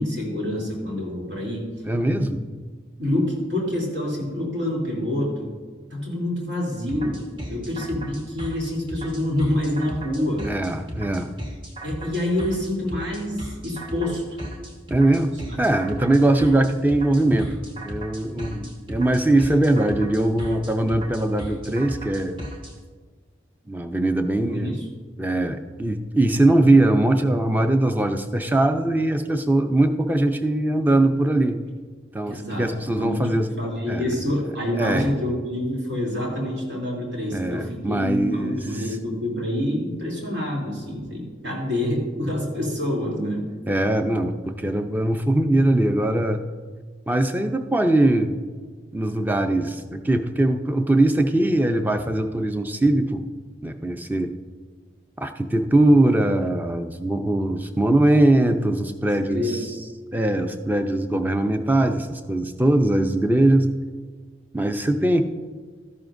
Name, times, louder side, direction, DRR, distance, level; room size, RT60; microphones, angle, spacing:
voice 1, 0.0-1.7 2.1-2.2 3.0-5.5 5.9-7.2 7.5-10.4 11.8-14.4 15.5-15.6 24.5-24.8 32.3-43.5 59.1-59.7, left 1 dB, 75° right, -3 dB, 2.8 m, -27 dB
voice 2, 1.8-2.4 10.4-11.3 14.9-15.3 15.6-22.4 23.7-24.8 25.2-31.6 32.1-34.1 34.8-35.1 37.3-38.6 43.7-46.4 47.1-48.4 48.9-53.2 53.6-54.4 55.2-59.7 60.1-63.7 64.5-65.2, right 1 dB, 10° right, 7 dB, 0.5 m, -21 dB
sound 1, 6.9-22.7, equal, 25° right, 1.2 m, -36 dB
13.0 x 11.0 x 2.6 m, 1.5 s
head